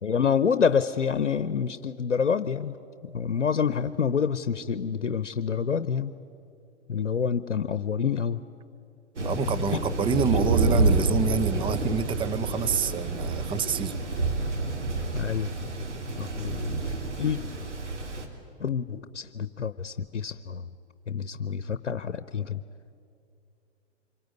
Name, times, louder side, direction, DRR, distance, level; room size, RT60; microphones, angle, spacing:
voice 1, 0.0-2.8 3.0-6.1 6.9-8.4 9.7-9.8 15.1-15.5 16.2-17.4 18.6-20.7 21.1-22.6, left 7 dB, 90° left, 13 dB, 0.8 m, -27 dB
voice 2, 9.2-14.0, right 6 dB, 15° right, 13 dB, 0.8 m, -28 dB
Thunder, 9.2-18.3, right 3 dB, 80° right, 3.6 m, -28 dB
26.0 x 23.5 x 9.3 m, 2.6 s
figure-of-eight pair, 110°, 35 cm